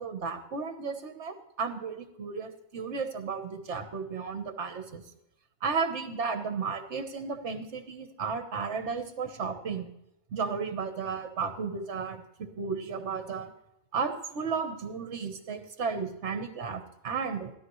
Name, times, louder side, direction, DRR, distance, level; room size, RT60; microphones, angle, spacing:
voice 1, 0.0-5.0 5.6-9.9 10.3-13.5 13.9-17.5, right 5 dB, 55° right, 8 dB, 1.4 m, -34 dB
13.5 x 13.0 x 3.2 m, 0.81 s
omnidirectional pair, 1.5 m